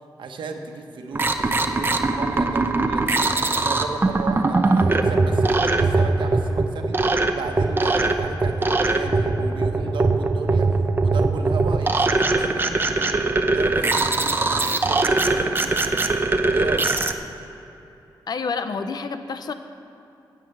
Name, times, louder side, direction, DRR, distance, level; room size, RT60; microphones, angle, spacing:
voice 1, 0.2-13.1 13.5-16.9, right 4 dB, 80° right, 4 dB, 1.2 m, -35 dB
sound 1, 1.1-17.1, right 3 dB, 25° right, 0.8 m, -21 dB
voice 2, 18.3-19.5, left 4 dB, 55° left, 9 dB, 0.8 m, -28 dB
9.8 x 9.1 x 7.9 m, 2.9 s
cardioid pair, 95°, 8 cm